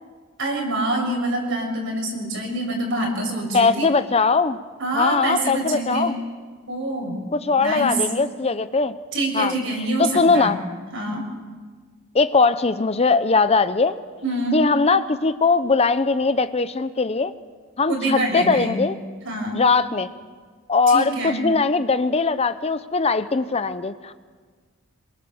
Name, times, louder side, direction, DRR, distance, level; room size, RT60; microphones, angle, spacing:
voice 1, 0.4-3.9 4.8-6.1 6.7-7.2 7.6-7.9 9.1-10.7 10.9-11.2 14.2-14.6 17.9-18.7 19.2-19.6 20.9-21.4, right 1 dB, 60° right, 1 dB, 6.6 m, -26 dB
voice 2, 3.5-4.6 4.9-6.1 7.3-8.9 9.3-9.5 10.0-10.6 12.1-14.0 14.5-17.3 17.8-19.0 19.5-20.1 20.7-24.1, left 4 dB, 30° left, 12 dB, 0.7 m, -20 dB
26.5 x 23.0 x 7.1 m, 1.5 s
head